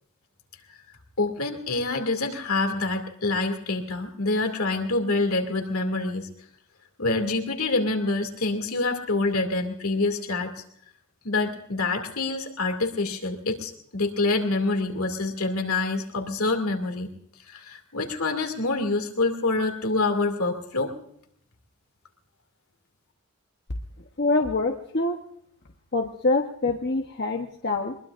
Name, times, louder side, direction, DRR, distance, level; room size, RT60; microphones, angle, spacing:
voice 1, 1.2-6.3 7.0-10.5 11.2-17.1 17.5-20.9, left 3 dB, 70° left, 4 dB, 2.4 m, -26 dB
voice 2, 24.2-25.2 25.9-28.0, left 3 dB, 45° left, 2 dB, 1.0 m, -25 dB
23.0 x 21.5 x 2.5 m, 0.70 s
head